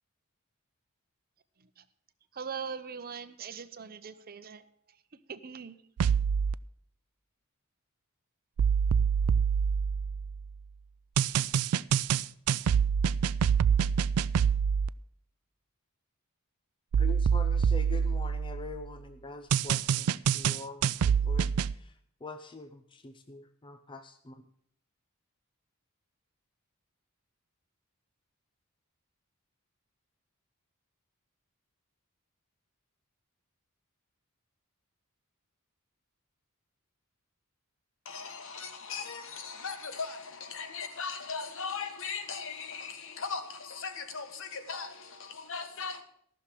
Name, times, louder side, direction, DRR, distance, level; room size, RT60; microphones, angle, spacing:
voice 1, 2.3-5.0 5.3-5.8, right 6 dB, 45° right, 12 dB, 0.7 m, -41 dB
sound 1, 6.0-6.5 8.6-10.5 11.2-14.9 16.9-18.8 19.5-21.7, right 7 dB, 85° right, 0.4 m, -26 dB
voice 2, 17.0-24.4, left 3 dB, 25° left, 8 dB, 0.6 m, -44 dB
voice 3, 38.0-46.0, left 5 dB, 65° left, 8 dB, 1.5 m, -38 dB
14.5 x 6.4 x 7.8 m, 0.66 s
head